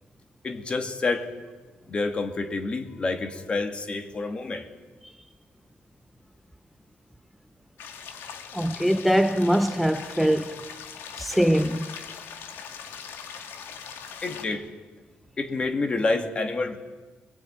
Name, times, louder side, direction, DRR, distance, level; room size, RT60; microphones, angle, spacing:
voice 1, 0.4-1.3 1.9-4.7 14.2-14.7 15.4-16.8, left 3 dB, 30° left, 2.2 m, -28 dB
sound 1, 7.8-14.5, left 7 dB, 90° left, 2.1 m, -41 dB
voice 2, 8.5-10.6 11.2-11.9, equal, ahead, 0.8 m, -22 dB
26.0 x 22.0 x 8.9 m
cardioid pair, 135°, 4 cm